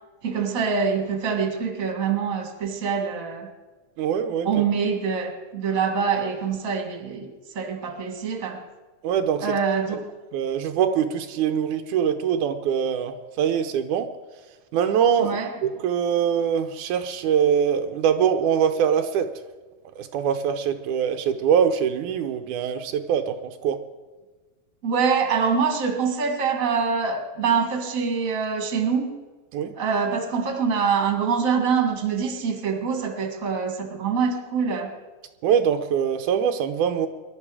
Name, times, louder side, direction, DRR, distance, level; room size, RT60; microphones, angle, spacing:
voice 1, 0.2-3.5 4.4-8.6 9.4-10.1 15.2-15.5 24.8-29.1 29.8-34.9, right 6 dB, 30° right, 4 dB, 1.9 m, -25 dB
voice 2, 4.0-4.5 9.0-9.5 10.3-14.1 14.7-19.3 20.0-23.8 29.5-29.8 35.4-37.1, right 8 dB, 85° right, 7 dB, 2.4 m, -23 dB
21.0 x 12.0 x 4.9 m, 1.3 s
omnidirectional pair, 3.5 m